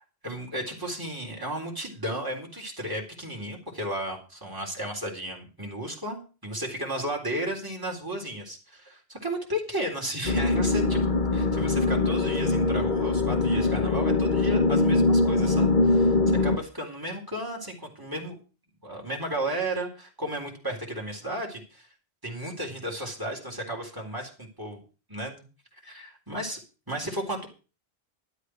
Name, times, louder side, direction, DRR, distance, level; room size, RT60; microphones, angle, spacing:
voice 1, 0.2-11.1 11.3-18.4 18.8-21.9 22.2-24.8 25.1-25.4 25.9-26.6 26.9-27.5, right 1 dB, 20° right, 0 dB, 3.9 m, -34 dB
sound 1, 10.2-16.6, left 3 dB, 50° left, 1.5 m, -23 dB
12.0 x 8.3 x 6.3 m, 0.35 s
omnidirectional pair, 1.1 m